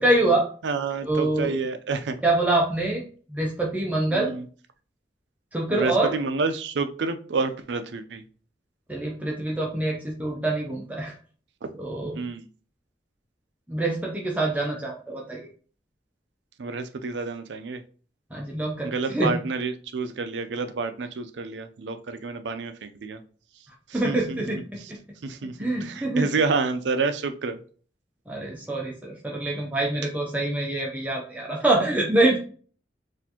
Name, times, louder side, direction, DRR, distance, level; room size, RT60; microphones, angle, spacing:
voice 1, 0.0-0.5 1.0-1.5 2.2-3.0 3.3-4.3 5.5-6.1 8.9-11.1 11.8-12.2 13.7-15.4 18.3-19.4 23.9-25.0 25.6-26.3 28.3-32.4, right 2 dB, 10° right, -2 dB, 0.5 m, -25 dB
voice 2, 0.6-2.2 4.1-4.4 5.7-8.2 12.1-12.4 16.6-17.8 18.8-23.2 23.9-24.4 25.2-27.6, right 4 dB, 85° right, 9 dB, 0.5 m, -29 dB
4.2 x 2.6 x 2.8 m, 0.41 s
head